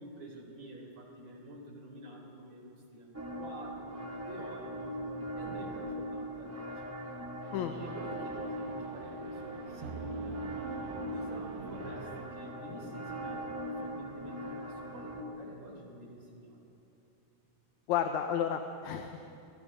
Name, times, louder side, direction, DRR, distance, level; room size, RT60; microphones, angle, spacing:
voice 1, 0.0-5.0 5.4-7.2 7.7-10.4 11.1-16.6, right 1 dB, 35° right, -1 dB, 4.5 m, -48 dB
sound 1, 3.1-15.2, equal, 10° right, 0.7 m, -40 dB
sound 2, 7.4-13.0, right 8 dB, 85° right, 2.4 m, -47 dB
voice 2, 17.9-19.3, left 9 dB, 75° left, 6 dB, 2.1 m, -32 dB
29.0 x 20.0 x 5.1 m, 2.8 s
omnidirectional pair, 3.6 m